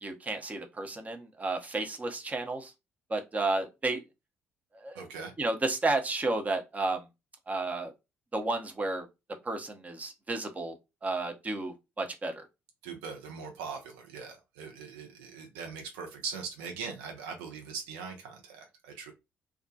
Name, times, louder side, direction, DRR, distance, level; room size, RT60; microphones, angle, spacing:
voice 1, 0.0-2.7 3.1-4.0 4.7-5.0 5.4-7.0 7.5-7.9 8.3-9.1 9.4-10.7 11.0-12.4, right 2 dB, 25° right, 0.6 m, -32 dB
voice 2, 4.9-5.3 12.8-19.1, right 5 dB, 70° right, 0.5 m, -41 dB
2.2 x 2.1 x 2.7 m
figure-of-eight pair, 45°, 7 cm